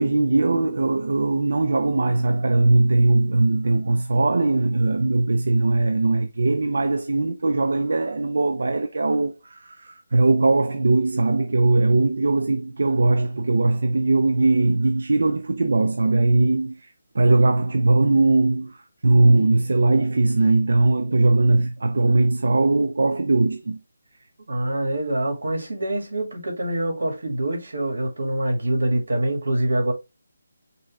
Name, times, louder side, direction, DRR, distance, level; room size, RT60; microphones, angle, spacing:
voice 1, 0.0-23.8, right 2 dB, 70° right, 0.5 m, -20 dB
voice 2, 24.5-29.9, right 1 dB, 90° right, 2.3 m, -25 dB
5.5 x 2.7 x 3.4 m
hypercardioid pair, 170°, 0 cm